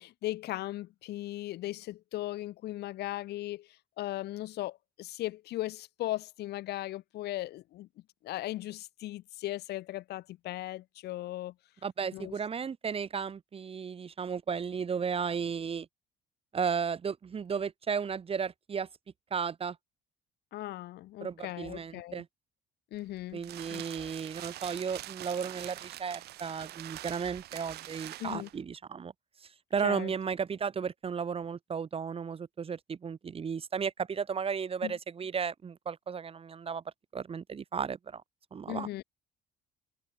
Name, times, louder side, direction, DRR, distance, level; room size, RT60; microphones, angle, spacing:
voice 1, 0.0-3.7 4.0-7.9 8.2-11.5 12.1-12.3 20.5-22.2 22.9-23.4 23.7-24.1 28.2-28.5 29.8-30.1 34.8-35.0 38.7-39.0, left 15 dB, 75° left, 2.4 m, -38 dB
voice 2, 11.8-15.9 16.5-18.9 19.3-19.8 21.2-22.3 23.3-29.1 29.4-36.8 37.1-38.2 38.5-38.9, right 6 dB, 35° right, 1.9 m, -34 dB
sound 1, 22.9-28.6, right 15 dB, 75° right, 2.4 m, -44 dB
cardioid pair, 110°, 17 cm